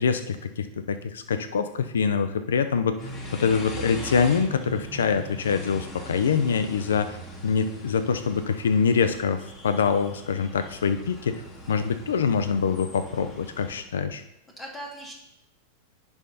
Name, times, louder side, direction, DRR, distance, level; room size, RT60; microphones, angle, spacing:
voice 1, 0.0-3.0 3.4-7.2 7.4-11.4 11.7-14.2, left 6 dB, 85° left, 10 dB, 0.4 m, -25 dB
sound 1, 3.0-13.8, right 1 dB, 35° left, 2.8 m, -41 dB
voice 2, 11.6-11.9 14.6-15.1, right 1 dB, 15° left, -2 dB, 1.8 m, -40 dB
10.5 x 5.6 x 2.7 m, 0.83 s
hypercardioid pair, 110°, 0 cm